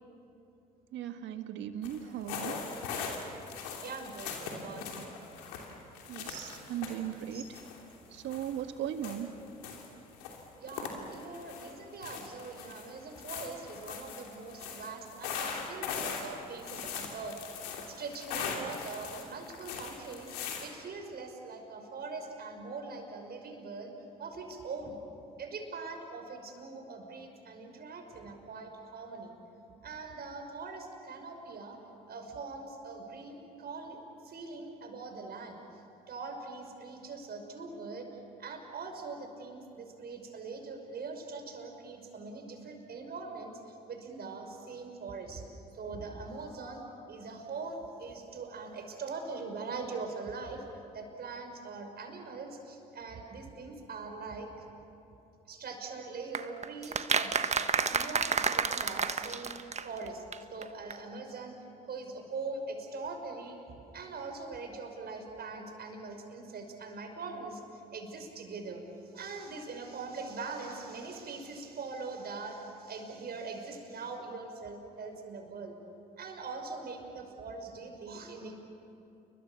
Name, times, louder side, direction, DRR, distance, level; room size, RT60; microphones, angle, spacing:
voice 1, 0.9-2.6 6.1-7.4 8.1-9.3, right 10 dB, 70° right, 8 dB, 1.7 m, -37 dB
sound 1, 1.8-2.0 2.3-8.6 8.9-9.9 10.1-11.7 12.0-20.7, left 6 dB, 90° left, 2.9 m, -40 dB
voice 2, 3.8-5.1 7.3-7.4 10.6-17.4 17.9-20.3 20.6-23.9 24.2-25.0 25.4-29.3 29.8-31.8 32.1-35.6 36.1-38.1 38.4-45.5 45.7-50.6 50.9-54.5 55.5-60.2 60.5-61.6 61.9-67.6 67.9-68.8 69.1-75.8 76.2-78.7, right 4 dB, 55° right, 4 dB, 5.6 m, -42 dB
sound 2, 56.3-60.1 60.3-60.4 60.6-60.7 60.9-61.0, right 5 dB, 35° right, 1.3 m, -30 dB
29.5 x 23.0 x 7.1 m, 2.8 s
hypercardioid pair, 55°, 20 cm